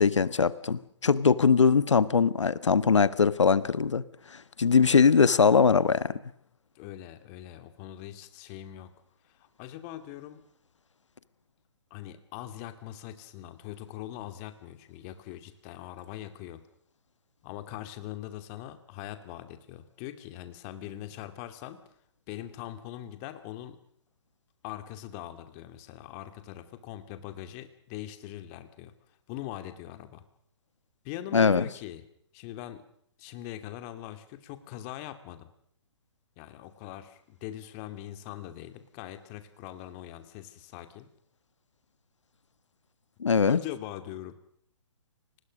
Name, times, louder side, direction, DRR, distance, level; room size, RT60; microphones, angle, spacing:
voice 1, 0.0-4.0 4.3-6.1 31.3-31.6 43.2-43.6, left 5 dB, 80° left, 16 dB, 1.4 m, -21 dB
voice 2, 6.7-8.9 9.3-10.4 11.9-16.6 17.4-21.8 22.3-23.8 24.6-28.9 29.3-30.2 31.0-32.0 32.3-32.8 33.2-35.5 36.4-41.1 43.5-44.4, left 13 dB, 30° left, 9 dB, 2.5 m, -42 dB
29.5 x 20.0 x 6.5 m, 0.68 s
hypercardioid pair, 140°, 15 cm